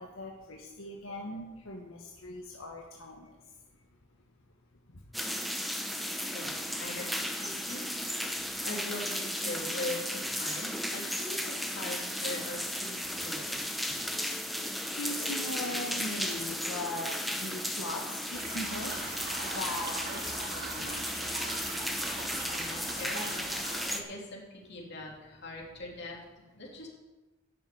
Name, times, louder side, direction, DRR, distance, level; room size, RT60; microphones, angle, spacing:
voice 1, 0.0-3.3 6.4-6.5 14.9-21.2, left 2 dB, 85° left, 0 dB, 1.4 m, -40 dB
sound 1, 5.1-24.0, equal, ahead, 1.0 m, -35 dB
voice 2, 6.3-7.8 8.6-13.6 22.5-23.5 23.9-26.2 26.6-26.9, left 2 dB, 60° left, -2 dB, 3.3 m, -41 dB
sound 2, 18.3-23.9, right 3 dB, 55° right, 2.6 m, -41 dB
10.5 x 7.0 x 8.8 m, 1.1 s
head